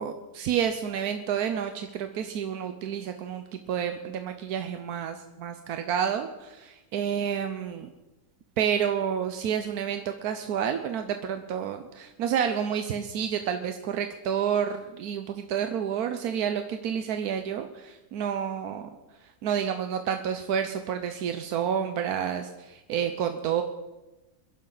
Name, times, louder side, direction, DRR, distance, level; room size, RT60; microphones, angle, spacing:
voice 1, 0.0-7.9 8.6-18.9 19.2-23.6, right 8 dB, 90° right, 7 dB, 1.3 m, -29 dB
22.5 x 11.0 x 3.9 m, 1.1 s
omnidirectional pair, 1.5 m